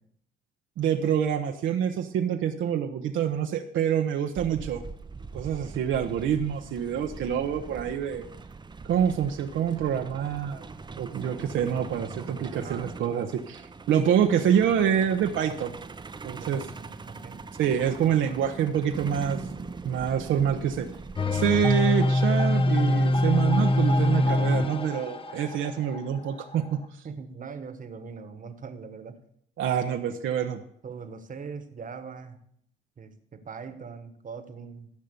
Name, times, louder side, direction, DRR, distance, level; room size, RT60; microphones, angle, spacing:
voice 1, 0.8-4.8 5.3-8.2 8.8-10.6 11.0-15.7 16.2-16.6 17.6-20.9 21.3-26.8 29.6-30.6, right 9 dB, 75° right, 4 dB, 0.9 m, -26 dB
Truck, 4.4-22.1, right 4 dB, 20° right, 0.7 m, -42 dB
voice 2, 12.6-13.1 16.4-17.5 17.8-18.7 27.0-29.2 30.8-32.4 33.0-34.9, right 5 dB, 40° right, 9 dB, 1.3 m, -42 dB
sound 1, 21.2-26.8, left 1 dB, 25° left, 0.9 m, -24 dB
14.0 x 5.5 x 6.8 m, 0.68 s
cardioid pair, 90°, 20 cm